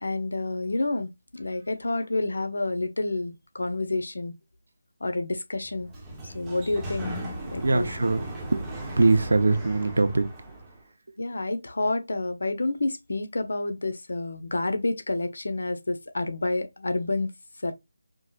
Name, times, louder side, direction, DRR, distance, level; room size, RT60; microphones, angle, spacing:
voice 1, 0.0-4.3 5.0-5.9 6.3-7.1 7.5-8.0 11.2-17.3 17.6-17.7, left 2 dB, 75° left, 1.0 m, -29 dB
Sliding door, 5.6-10.8, right 1 dB, 5° right, 1.0 m, -37 dB
voice 2, 7.6-10.3 11.1-11.2, right 3 dB, 70° right, 0.8 m, -23 dB
4.9 x 3.3 x 2.4 m
figure-of-eight pair, 170°, 0 cm